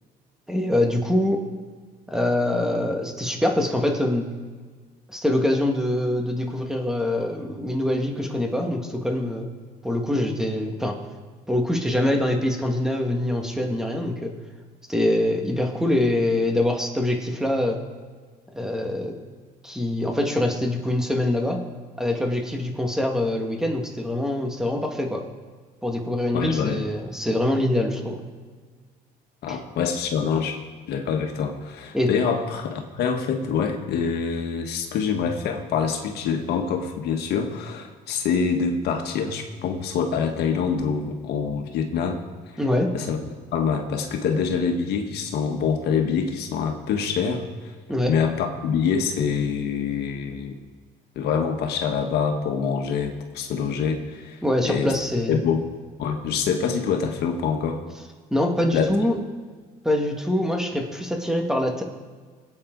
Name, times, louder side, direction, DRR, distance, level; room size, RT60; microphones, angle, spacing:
voice 1, 0.5-1.4 2.1-4.3 5.1-9.5 9.8-11.0 11.5-14.4 14.9-17.8 18.5-19.2 19.6-21.6 22.0-25.3 25.8-28.2 29.5-29.6 31.9-32.1 42.6-43.0 47.9-48.1 54.4-55.4 58.3-59.2 59.8-61.8, left 1 dB, 5° right, 2 dB, 1.9 m, -24 dB
voice 2, 26.3-26.8 29.4-30.6 30.9-42.2 42.9-47.7 48.1-50.6 51.2-54.9 55.3-55.7 56.0-57.8 58.7-58.9, left 6 dB, 75° left, 4 dB, 1.6 m, -25 dB
22.5 x 8.7 x 4.0 m, 1.5 s
cardioid pair, 110°, 17 cm